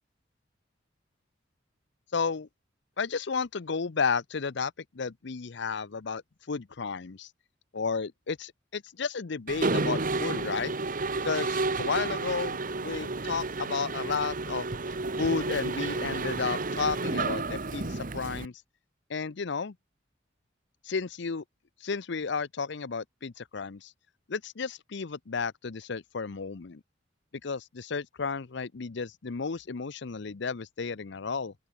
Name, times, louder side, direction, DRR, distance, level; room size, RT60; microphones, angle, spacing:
voice 1, 2.1-2.5 3.0-6.2 6.5-7.3 7.7-10.7 11.2-14.7 15.2-18.6 19.1-19.8 20.8-21.4 21.8-23.9 24.3-26.8 27.4-31.5, left 5 dB, 65° left, 0.7 m, -32 dB
Mechanisms, 9.5-18.5, right 3 dB, 45° right, 1.4 m, -31 dB
open air
head